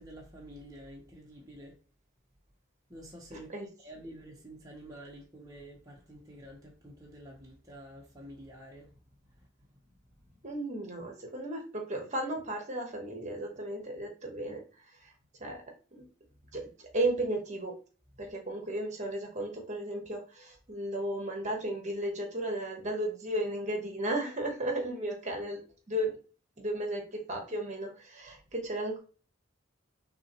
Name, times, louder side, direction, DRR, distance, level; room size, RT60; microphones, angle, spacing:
voice 1, 0.0-1.7 2.9-3.5 3.8-8.9, right 1 dB, 20° right, 1.0 m, -49 dB
voice 2, 3.3-3.7 10.4-14.6 15.4-15.6 16.5-16.6 16.9-17.7 18.2-25.6 25.9-26.2 26.6-29.0, right 1 dB, 35° right, 1.2 m, -34 dB
5.9 x 3.0 x 3.0 m
head